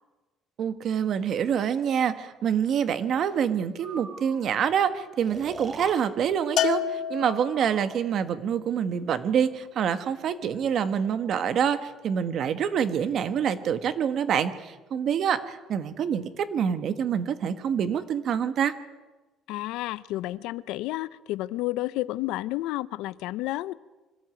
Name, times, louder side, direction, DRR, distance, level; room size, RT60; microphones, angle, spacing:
voice 1, 0.6-18.7, right 8 dB, 50° right, 11 dB, 1.5 m, -26 dB
Breathing, 3.8-4.4 5.2-6.0 7.2-8.0, right 3 dB, 25° right, 2.2 m, -41 dB
Bell, 6.6-7.9, left 12 dB, 60° left, 1.1 m, -28 dB
voice 2, 19.5-23.7, left 17 dB, 85° left, 18 dB, 0.6 m, -31 dB
25.0 x 14.0 x 9.1 m, 1.2 s
cardioid pair, 145°, 0 cm